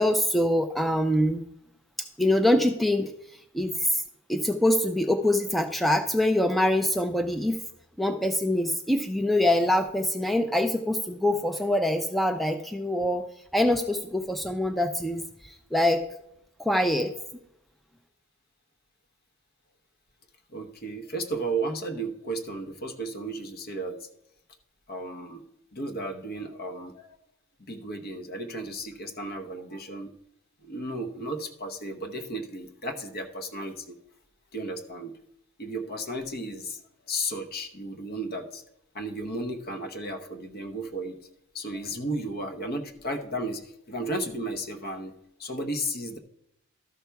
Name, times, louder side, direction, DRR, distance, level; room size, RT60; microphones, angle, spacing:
voice 1, 0.0-1.4 2.2-3.1 3.5-4.0 4.3-7.6 8.0-13.3 13.5-16.0 16.6-17.1, left 1 dB, ahead, 6 dB, 0.4 m, -24 dB
voice 2, 20.5-24.1 24.9-25.4 25.7-27.2 27.6-30.1 30.6-33.9 34.5-35.1 35.6-36.8 37.0-38.6 38.9-41.2 41.5-45.1 45.4-46.2, right 1 dB, 50° left, 7 dB, 0.9 m, -34 dB
12.5 x 5.7 x 4.6 m, 0.79 s
head